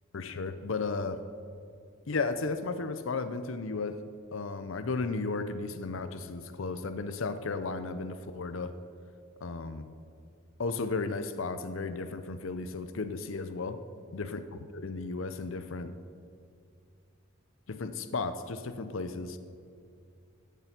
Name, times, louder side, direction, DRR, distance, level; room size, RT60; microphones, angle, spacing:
voice 1, 0.1-1.2 2.1-4.0 4.3-8.7 9.4-9.9 10.6-13.8 14.1-14.4 14.7-15.9 17.7-19.4, left 3 dB, 75° left, 10 dB, 0.6 m, -34 dB
16.5 x 7.0 x 5.9 m, 2.4 s
head